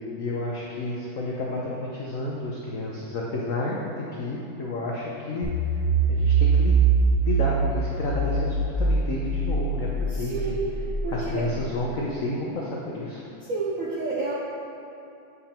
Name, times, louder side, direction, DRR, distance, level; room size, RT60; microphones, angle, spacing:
voice 1, 0.2-5.8 6.1-6.7 7.2-13.3, left 2 dB, 75° left, -4 dB, 0.7 m, -31 dB
sound 1, 5.4-11.7, right 4 dB, 20° right, 0.6 m, -23 dB
voice 2, 10.3-10.7 11.0-11.4 13.5-14.3, right 3 dB, 70° right, -5 dB, 0.8 m, -29 dB
8.0 x 5.6 x 2.9 m, 2.7 s
omnidirectional pair, 2.2 m